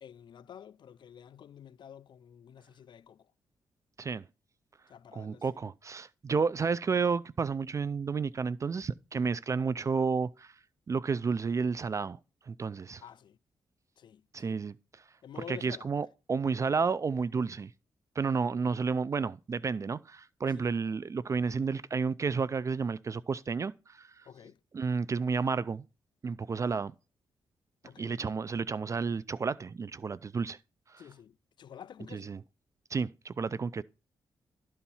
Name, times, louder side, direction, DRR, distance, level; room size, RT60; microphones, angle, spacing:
voice 1, 0.0-3.2 4.9-5.6 9.1-9.3 13.0-13.4 14.0-14.6 15.2-15.9 20.5-20.7 24.3-24.6 27.8-28.1 31.0-32.3, left 9 dB, 60° left, 0.4 m, -50 dB
voice 2, 5.1-10.5 10.9-12.2 12.5-13.0 14.3-14.8 15.4-17.7 18.2-24.2 24.7-25.8 26.2-26.9 28.0-30.6 30.9-31.0 32.1-32.4 32.9-33.8, right 5 dB, 35° right, 0.4 m, -31 dB
12.0 x 4.4 x 5.5 m
cardioid pair, 95°, 9 cm